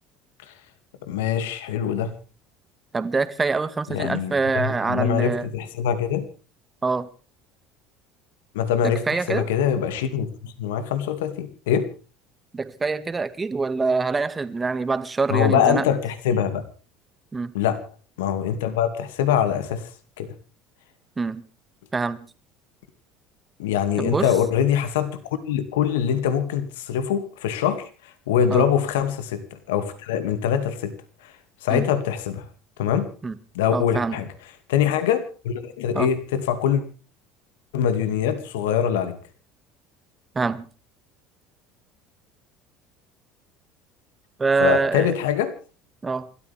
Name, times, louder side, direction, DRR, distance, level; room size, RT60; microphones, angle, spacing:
voice 1, 1.1-2.1 3.9-6.3 8.5-11.9 15.3-16.6 17.5-17.8 18.2-19.9 20.2-20.3 23.6-31.0 31.2-31.3 31.6-32.4 32.8-33.1 33.5-34.3 34.7-36.8 37.7-39.2 44.6-45.5, left 8 dB, 80° left, 2.3 m, -23 dB
voice 2, 2.9-5.5 6.8-7.1 8.8-9.5 12.5-15.8 17.3-17.5 21.2-21.4 21.9-22.2 24.0-24.3 28.5-28.6 31.7-31.8 33.2-33.3 33.7-34.2 35.9-36.1 40.4-40.7 44.4-45.1 46.0-46.3, right 4 dB, 20° right, 2.0 m, -25 dB
28.0 x 13.5 x 3.5 m
hypercardioid pair, 80°, 0 cm